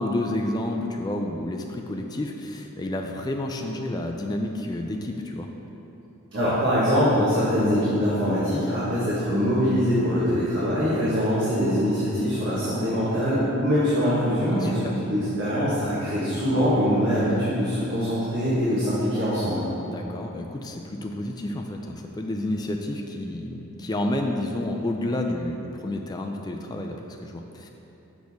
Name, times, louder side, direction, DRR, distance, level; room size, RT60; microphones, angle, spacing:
voice 1, 0.0-5.5 14.5-14.9 19.8-27.7, left 1 dB, 20° left, 2 dB, 0.3 m, -30 dB
voice 2, 6.3-19.6, equal, 55° right, -11 dB, 1.3 m, -23 dB
6.4 x 6.1 x 3.5 m, 3.0 s
head